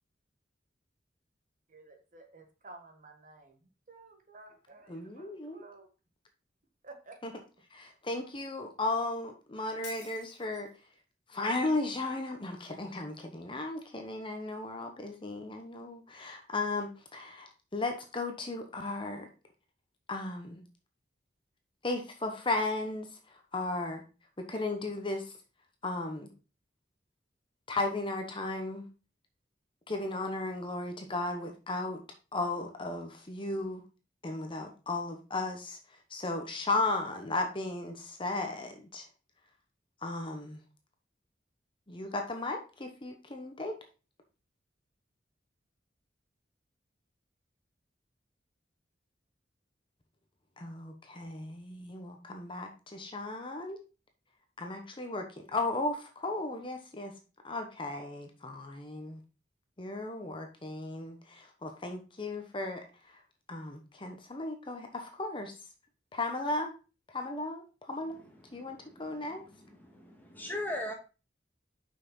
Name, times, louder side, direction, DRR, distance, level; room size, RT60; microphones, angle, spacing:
voice 1, 1.7-5.9 6.8-7.2, right 3 dB, 45° right, 4 dB, 1.5 m, -53 dB
voice 2, 4.9-5.6 7.2-7.3 7.7-10.7 11.3-19.3 20.1-20.6 21.8-24.0 24.4-25.4 25.8-26.3 27.7-28.9 29.9-32.0 32.3-33.8 34.2-39.1 40.0-40.6 41.9-43.8 50.6-53.8 54.6-57.1 57.4-59.2 59.8-63.2 63.5-65.7 66.1-66.7 67.1-68.2 68.5-69.4, left 2 dB, 30° left, 4 dB, 1.0 m, -35 dB
Shatter, 9.8-10.8, left 5 dB, 75° left, 1.8 m, -49 dB
voice 3, 68.5-69.3 69.8-70.9, left 1 dB, 10° left, 0 dB, 1.8 m, -39 dB
6.5 x 5.7 x 3.9 m, 0.32 s
head